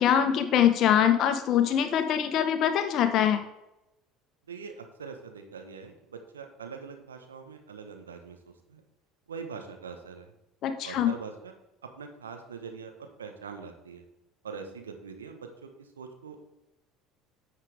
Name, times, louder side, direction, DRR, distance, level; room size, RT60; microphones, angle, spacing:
voice 1, 0.0-3.4 10.6-11.1, left 9 dB, 55° left, 8 dB, 1.3 m, -23 dB
voice 2, 4.5-8.8 9.3-10.3 10.8-11.5 11.8-14.0 14.4-16.4, right 5 dB, 85° right, 6 dB, 1.3 m, -43 dB
10.5 x 7.4 x 3.6 m, 0.90 s
hypercardioid pair, 70°, 0 cm